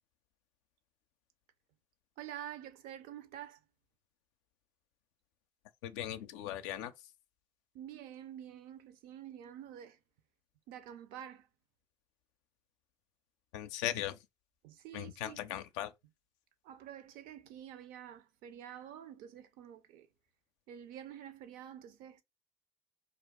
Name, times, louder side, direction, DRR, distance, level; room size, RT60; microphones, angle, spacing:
voice 1, 2.2-3.6 7.7-10.0 10.7-11.5 14.6-15.5 16.6-20.1 20.7-22.2, right 10 dB, 65° right, 0.5 m, -48 dB
voice 2, 5.8-6.9 13.5-14.2 14.9-15.9, left 12 dB, 75° left, 0.4 m, -38 dB
2.4 x 2.2 x 3.5 m
hypercardioid pair, 55°, 16 cm